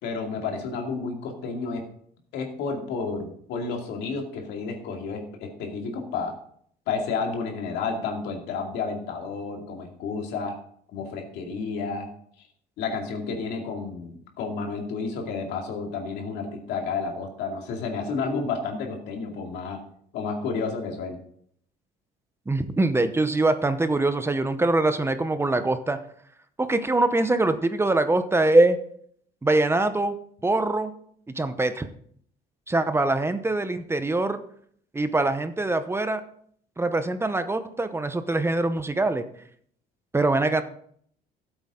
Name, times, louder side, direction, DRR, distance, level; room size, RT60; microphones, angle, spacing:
voice 1, 0.0-1.9 2.3-6.3 6.9-10.5 10.9-12.1 12.8-19.8 20.1-21.2, left 4 dB, 85° left, 2 dB, 2.4 m, -31 dB
voice 2, 22.5-26.0 26.6-28.8 29.4-30.2 30.4-30.9 31.3-31.9 32.7-34.4 34.9-36.2 36.8-39.3 40.1-40.6, right 2 dB, 15° right, 10 dB, 0.8 m, -23 dB
13.5 x 8.0 x 3.7 m, 0.62 s
cardioid pair, 110°, 17 cm